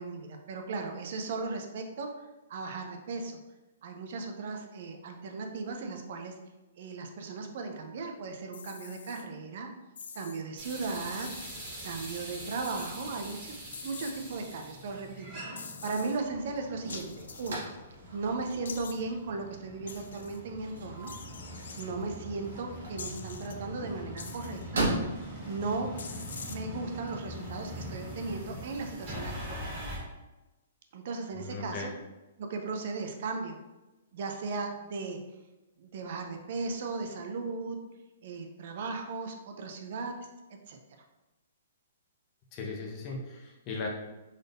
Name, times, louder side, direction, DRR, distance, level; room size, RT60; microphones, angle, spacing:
voice 1, 0.0-2.1 2.5-3.3 3.8-6.3 6.8-9.7 10.1-11.3 11.8-13.5 13.8-17.6 18.1-21.1 21.8-24.8 25.5-25.9 26.5-29.6 30.9-31.9 32.4-33.6 34.1-35.2 35.8-37.8 38.2-40.1 40.7-40.8, right 3 dB, 45° right, 4 dB, 0.4 m, -36 dB
sound 1, 8.5-9.2 10.0-10.4 11.2-11.6 12.6-13.1 13.7-14.4 15.6-16.2 16.9-17.6 18.6-19.0 19.9-20.4 21.1-21.9 23.0-23.5 24.2-24.7 26.0-26.6, left 5 dB, 80° left, 0.4 m, -45 dB
sound 2, 10.6-30.0, equal, 15° right, 1.0 m, -43 dB
sound 3, 15.9-28.2, right 2 dB, 85° right, 1.2 m, -40 dB
voice 2, 31.4-31.9 42.5-43.9, left 3 dB, 20° left, -1 dB, 0.5 m, -37 dB
3.9 x 2.6 x 3.4 m, 1.1 s
hypercardioid pair, 175°, 0 cm